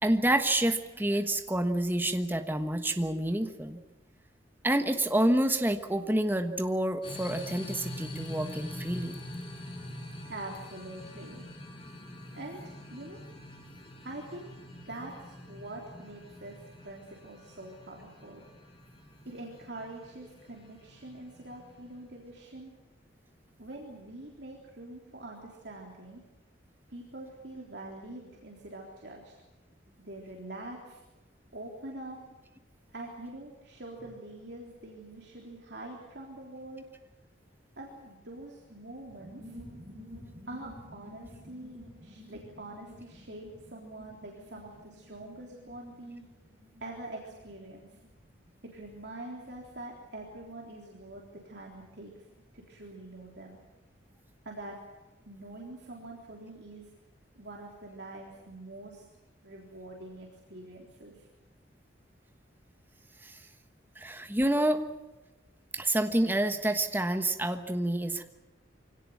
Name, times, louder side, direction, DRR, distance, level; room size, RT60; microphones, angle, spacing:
voice 1, 0.0-3.8 4.6-9.1 63.2-63.4 64.0-64.8 65.7-68.2, right 1 dB, 10° right, 7 dB, 1.3 m, -28 dB
sound 1, 7.0-22.1, left 1 dB, 30° left, 4.2 m, -45 dB
voice 2, 10.3-11.4 12.3-13.2 14.0-14.5 14.9-18.5 19.3-22.7 23.6-26.2 26.9-29.4 30.0-31.0 31.5-32.2 32.9-36.8 37.8-39.6 40.5-46.2 46.8-47.9 48.6-52.1 52.5-53.6 54.4-54.8 55.3-56.9 57.4-59.1 59.4-61.3, right 2 dB, 60° right, -1 dB, 3.7 m, -44 dB
sound 2, 39.0-55.3 55.6-55.7 55.9-56.3, equal, 35° right, 8.0 m, -53 dB
24.5 x 18.0 x 9.5 m, 1.1 s
head